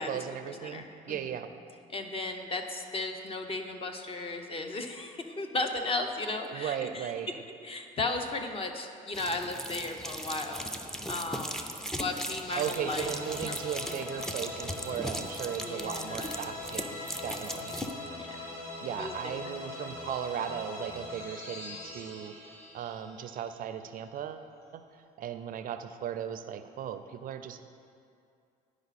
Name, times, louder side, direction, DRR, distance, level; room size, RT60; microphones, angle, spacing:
voice 1, 0.0-1.5 6.5-7.3 12.6-17.8 18.8-22.3 22.7-24.5 24.7-24.8 25.2-27.6, right 9 dB, 55° right, 9 dB, 0.4 m, -37 dB
voice 2, 0.6-1.3 1.9-7.1 7.6-10.6 11.1-11.6 12.0-13.1 13.4-13.5 15.5-16.3 17.3-17.5 18.1-18.2 19.0-19.2 19.4-19.5, left 2 dB, 35° left, 5 dB, 0.7 m, -35 dB
sound 1, 9.1-17.9, equal, 5° left, 0.4 m, -38 dB
sound 2, 12.6-24.0, left 2 dB, 85° left, 1.6 m, -42 dB
10.5 x 4.9 x 4.1 m, 2.4 s
cardioid pair, 110°, 17 cm